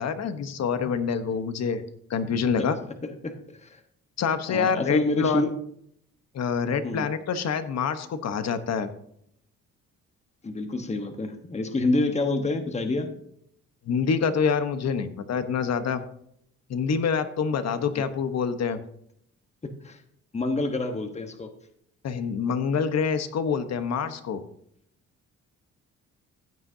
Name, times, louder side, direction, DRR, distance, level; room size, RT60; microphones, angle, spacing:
voice 1, 0.0-2.8 4.2-5.4 6.3-8.9 13.8-16.0 16.7-18.8 22.0-24.4, left 6 dB, 60° left, 10 dB, 1.2 m, -26 dB
voice 2, 3.0-3.8 4.5-5.5 6.8-7.1 10.4-13.1 17.9-18.0 19.6-20.0 20.3-21.5, left 2 dB, 20° left, 6 dB, 1.2 m, -28 dB
15.0 x 8.8 x 2.8 m, 0.70 s
cardioid pair, 90°, 30 cm